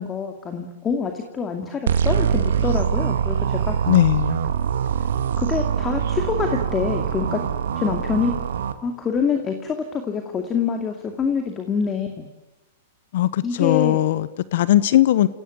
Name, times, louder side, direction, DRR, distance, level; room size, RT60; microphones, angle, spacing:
voice 1, 0.0-3.8 5.4-7.4 7.8-8.3 8.8-12.3 13.4-14.0, left 6 dB, 20° left, 2.4 m, -26 dB
sound 1, 1.9-8.7, right 8 dB, 80° right, 1.9 m, -23 dB
voice 2, 3.9-4.5 13.1-15.3, left 14 dB, 65° left, 0.9 m, -19 dB
29.0 x 17.0 x 9.4 m
hypercardioid pair, 125°, 0 cm